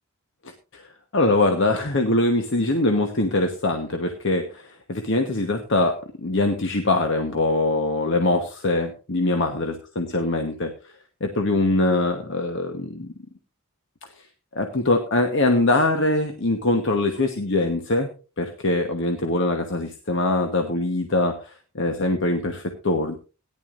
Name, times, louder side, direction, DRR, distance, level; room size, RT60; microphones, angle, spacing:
voice 1, 1.1-10.7 11.2-13.1 14.5-18.1 18.4-23.1, left 2 dB, 55° left, 5 dB, 1.1 m, -23 dB
17.5 x 10.5 x 2.5 m, 0.32 s
head